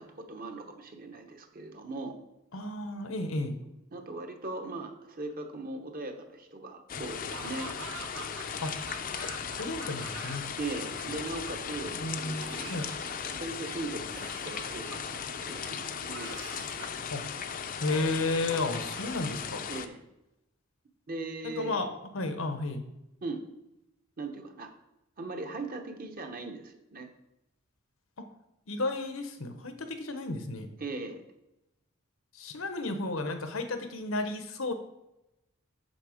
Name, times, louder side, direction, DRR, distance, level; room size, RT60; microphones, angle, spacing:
voice 1, 0.0-2.1 3.4-7.7 10.6-16.3 19.7-20.0 21.1-21.8 23.2-23.4 24.2-24.7 25.2-27.1 30.8-31.2, right 2 dB, 45° right, 5 dB, 1.1 m, -39 dB
voice 2, 2.5-3.5 8.6-8.7 9.6-10.4 11.9-12.9 17.1-17.2 17.8-19.6 21.4-21.9 22.1-22.8 28.2-28.3 28.7-30.7 32.3-34.7, left 2 dB, 90° left, 7 dB, 1.0 m, -33 dB
sound 1, 6.9-19.9, left 7 dB, 45° left, 0.5 m, -37 dB
Laughter / Cough, 7.3-10.6 10.9-11.7 12.4-13.5 14.2-15.4 16.1-17.0 17.7-18.3 18.7-19.9, right 4 dB, 65° right, 0.9 m, -46 dB
6.7 x 6.6 x 5.0 m, 0.92 s
head